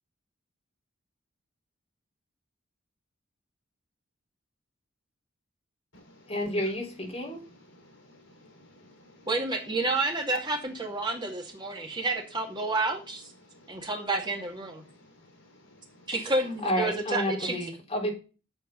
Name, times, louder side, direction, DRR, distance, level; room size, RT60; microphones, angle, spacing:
voice 1, 6.3-7.4 16.6-18.1, equal, 30° left, -1 dB, 4.3 m, -30 dB
voice 2, 7.7-9.3 11.8-11.9 13.5-13.8 14.9-15.3 15.6-15.7 16.0-16.1, left 2 dB, 70° left, 3 dB, 5.2 m, -53 dB
voice 3, 9.3-13.3 13.7-14.8 16.1-17.6, right 2 dB, 20° right, 2 dB, 2.2 m, -30 dB
10.5 x 7.7 x 3.9 m, 0.33 s
head